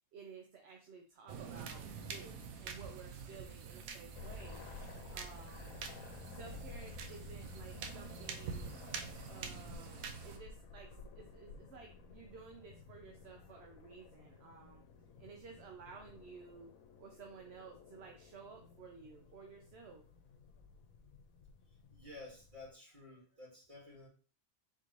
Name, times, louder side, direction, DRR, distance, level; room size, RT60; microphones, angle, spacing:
voice 1, 0.1-4.6 5.1-5.8 6.3-8.8 9.3-14.8 15.2-16.7 17.0-20.0, right 5 dB, 60° right, 2 dB, 0.8 m, -54 dB
sound 1, 1.3-10.4, right 6 dB, 85° right, 1.1 m, -46 dB
sound 2, 4.1-22.7, left 4 dB, 80° left, 1.1 m, -54 dB
voice 2, 21.9-24.1, left 2 dB, 35° right, -7 dB, 2.4 m, -52 dB
4.3 x 3.8 x 3.1 m, 0.39 s
omnidirectional pair, 1.4 m